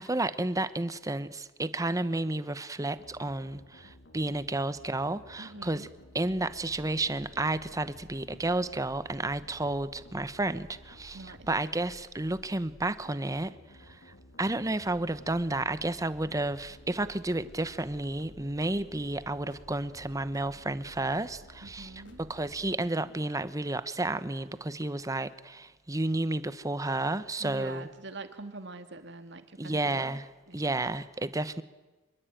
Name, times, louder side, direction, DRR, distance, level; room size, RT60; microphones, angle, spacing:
voice 1, 0.0-5.9 6.1-14.1 14.4-27.9 29.6-30.3 30.5-31.6, right 2 dB, 20° right, 1.0 m, -31 dB
sound 1, 3.0-22.7, left 1 dB, 70° left, 3.2 m, -53 dB
voice 2, 5.4-5.9 11.1-11.5 21.6-22.2 27.4-30.1 30.5-31.0, right 3 dB, 65° right, 2.3 m, -45 dB
26.5 x 22.0 x 9.2 m
head